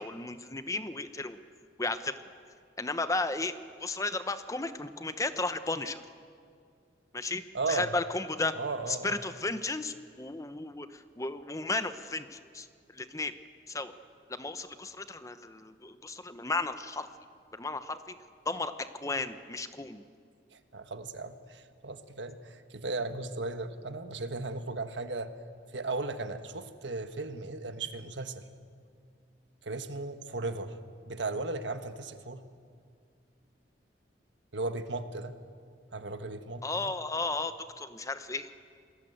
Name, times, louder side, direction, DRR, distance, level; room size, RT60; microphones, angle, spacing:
voice 1, 0.0-1.4 1.8-2.2 2.8-3.5 3.8-6.0 7.1-8.5 8.9-12.7 12.9-13.3 13.7-13.9 14.3-17.1 17.5-18.0 18.5-18.7 19.0-20.0 36.6-38.5, left 3 dB, 20° left, 10 dB, 0.9 m, -34 dB
voice 2, 7.5-7.9 8.5-9.2 20.5-25.3 25.7-28.4 29.6-30.7 31.1-32.4 34.5-35.3 35.9-36.9, right 3 dB, 85° right, 9 dB, 1.4 m, -36 dB
28.0 x 21.0 x 8.0 m, 2.2 s
head